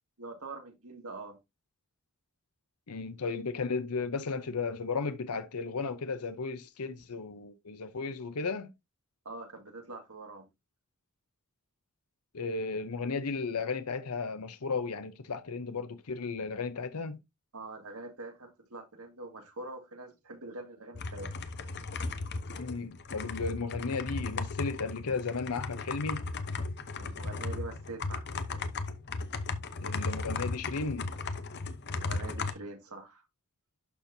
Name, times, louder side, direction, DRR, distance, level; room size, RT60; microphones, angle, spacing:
voice 1, 0.2-1.4 9.3-10.5 17.5-21.3 27.0-28.6 31.9-33.2, right 2 dB, 70° right, 2.0 m, -44 dB
voice 2, 2.9-8.7 12.3-17.2 22.6-26.2 29.8-31.1, left 4 dB, 85° left, 0.8 m, -34 dB
sound 1, 21.0-32.5, left 3 dB, 50° left, 0.9 m, -36 dB
12.0 x 4.4 x 2.7 m
head